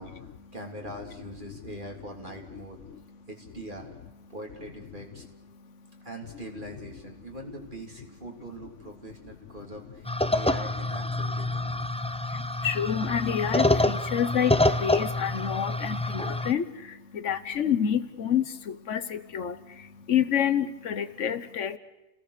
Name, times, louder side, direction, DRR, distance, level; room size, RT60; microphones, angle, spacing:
voice 1, 0.0-2.8 3.3-3.9 4.3-5.2 6.0-11.7, right 1 dB, 45° right, 1 dB, 3.6 m, -42 dB
sound 1, 10.1-16.5, left 1 dB, 5° left, 0.5 m, -27 dB
voice 2, 12.6-14.5 14.8-16.6 17.1-19.5 20.1-21.8, left 9 dB, 85° left, 12 dB, 1.4 m, -28 dB
29.5 x 18.0 x 6.7 m, 0.98 s
omnidirectional pair, 1.2 m